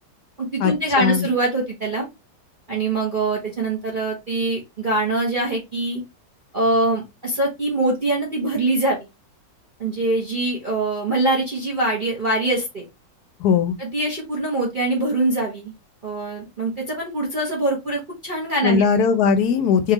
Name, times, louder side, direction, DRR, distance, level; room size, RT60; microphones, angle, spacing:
voice 1, 0.4-2.1 2.7-6.0 6.5-9.0 9.8-12.8 13.8-15.7 16.0-18.8, right 2 dB, 35° right, 0.9 m, -23 dB
voice 2, 13.4-13.7 18.6-19.9, left 6 dB, 70° left, 1.1 m, -18 dB
3.7 x 3.1 x 2.9 m
omnidirectional pair, 1.9 m